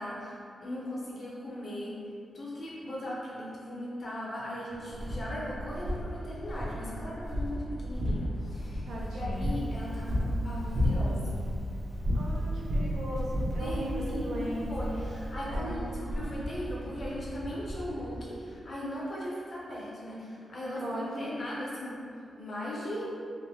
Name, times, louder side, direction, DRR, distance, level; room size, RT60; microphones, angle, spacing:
voice 1, 0.0-1.9 2.3-11.5 13.6-23.1, equal, 40° left, -6 dB, 0.7 m, -38 dB
sound 1, 4.7-18.2, equal, 45° right, 0.6 m, -33 dB
voice 2, 8.9-9.5 12.1-15.0 15.5-15.8 20.6-21.3, equal, 90° right, -4 dB, 0.6 m, -37 dB
Crackle, 9.3-15.4, right 1 dB, 5° right, 0.6 m, -50 dB
3.2 x 2.7 x 2.7 m, 2.5 s
wide cardioid pair, 160°, 0 cm